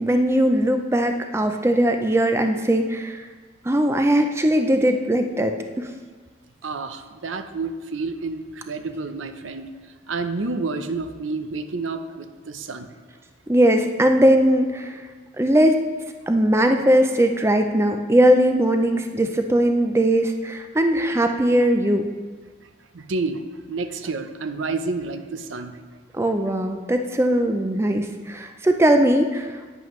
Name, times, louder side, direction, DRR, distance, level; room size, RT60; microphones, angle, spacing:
voice 1, 0.0-3.2 3.6-5.9 13.5-15.0 15.4-15.8 16.3-22.0 26.1-29.6, right 1 dB, 15° right, 5 dB, 0.4 m, -19 dB
voice 2, 6.6-9.7 10.1-12.9 22.9-23.4 23.7-25.7, right 3 dB, 80° right, 8 dB, 0.6 m, -29 dB
10.5 x 9.4 x 3.1 m, 1.4 s
head